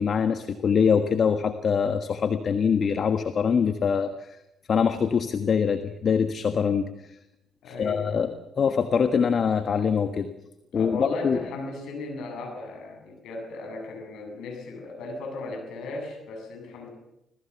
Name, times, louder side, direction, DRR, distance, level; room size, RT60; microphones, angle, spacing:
voice 1, 0.0-4.4 4.7-6.9 7.8-10.3 10.7-11.4, left 6 dB, 50° left, 9 dB, 1.5 m, -24 dB
voice 2, 7.6-8.3 10.7-16.9, left 3 dB, 70° left, 2 dB, 8.0 m, -36 dB
26.0 x 18.5 x 7.1 m, 0.87 s
hypercardioid pair, 50°, 0 cm